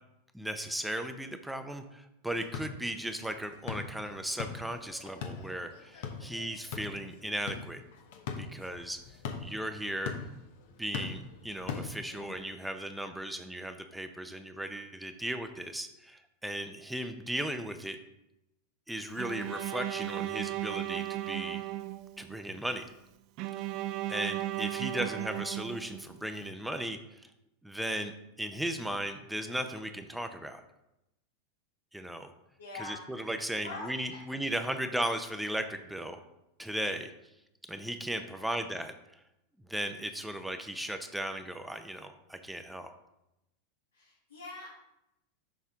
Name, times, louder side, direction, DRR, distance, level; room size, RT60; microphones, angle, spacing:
voice 1, 0.3-7.8 8.4-9.0 9.4-10.1 10.8-18.0 18.9-21.6 22.2-22.9 24.1-27.2 27.6-30.6 31.9-32.3 32.7-36.2 36.6-37.1 37.7-39.2 39.7-42.9, right 1 dB, 5° right, 7 dB, 0.6 m, -36 dB
sound 1, 2.3-12.4, left 5 dB, 65° left, 1.1 m, -42 dB
Bowed string instrument, 19.2-22.4 23.4-26.3, right 15 dB, 50° right, 0.4 m, -36 dB
voice 2, 32.6-33.0 33.6-34.2 38.3-38.5 43.9-44.7, left 3 dB, 85° left, -4 dB, 1.5 m, -44 dB
6.6 x 5.6 x 3.6 m, 0.86 s
hypercardioid pair, 95°, 0 cm